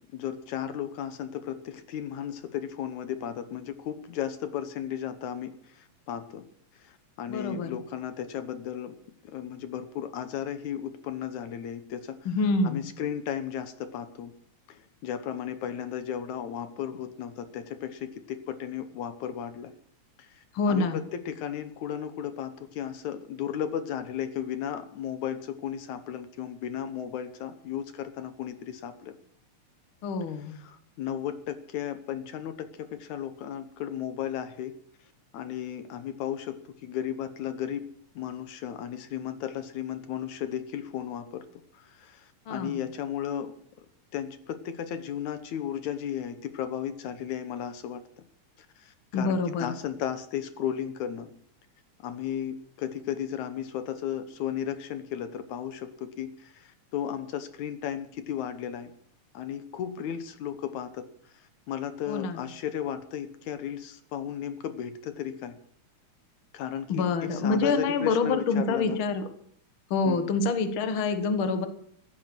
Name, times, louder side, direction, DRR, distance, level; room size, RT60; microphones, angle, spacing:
voice 1, 0.0-6.5 6.8-9.0 9.2-12.4 12.6-14.3 14.7-19.7 20.2-29.2 30.4-34.7 35.3-37.9 38.2-41.5 41.7-43.5 44.1-48.0 48.6-51.3 52.0-58.9 59.3-65.5 66.5-69.0 70.1-70.3, left 9 dB, 75° left, 10 dB, 2.4 m, -35 dB
voice 2, 7.3-7.8 12.3-12.8 20.6-21.0 30.0-30.5 42.5-42.8 49.1-49.7 62.1-62.4 66.9-69.3 69.9-71.7, left 4 dB, 50° left, 8 dB, 2.0 m, -26 dB
15.5 x 12.5 x 6.1 m, 0.65 s
omnidirectional pair, 3.4 m